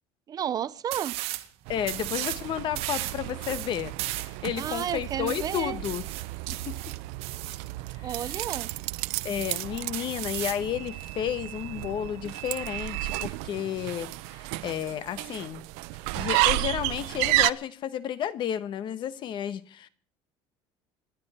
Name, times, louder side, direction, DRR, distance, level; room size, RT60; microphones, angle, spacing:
voice 1, 0.3-1.2 4.6-5.8 8.0-8.7, right 9 dB, 35° right, 0.7 m, -32 dB
sound 1, 0.9-1.5 1.8-2.4 2.8-7.6 8.1-8.8 9.1-10.7, right 16 dB, 70° right, 1.6 m, -36 dB
voice 2, 1.7-6.0 6.5-6.6 8.0-8.4 9.2-15.6 16.1-19.9, left 10 dB, 45° left, 1.3 m, -32 dB
sound 2, 1.7-17.5, right 21 dB, 85° right, 0.6 m, -32 dB
27.5 x 10.5 x 4.3 m
cardioid pair, 145°, 11 cm